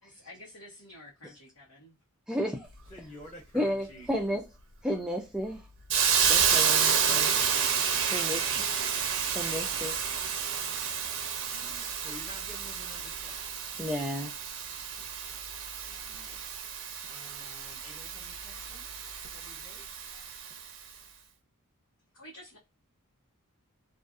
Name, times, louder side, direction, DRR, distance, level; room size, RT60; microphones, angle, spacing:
voice 1, 0.0-2.0 22.1-22.6, left 1 dB, 90° left, 1.1 m, -50 dB
voice 2, 2.3-2.7 3.5-4.5 4.8-5.6 6.3-7.4 8.1-8.7 9.3-10.0 13.8-14.3, equal, 5° right, 0.3 m, -32 dB
voice 3, 2.9-4.1 7.4-8.1 11.4-13.5 15.9-18.9 19.3-20.0, left 1 dB, 20° left, 0.8 m, -51 dB
Hiss, 5.9-20.7, right 7 dB, 65° right, 0.5 m, -30 dB
2.6 x 2.4 x 2.3 m
head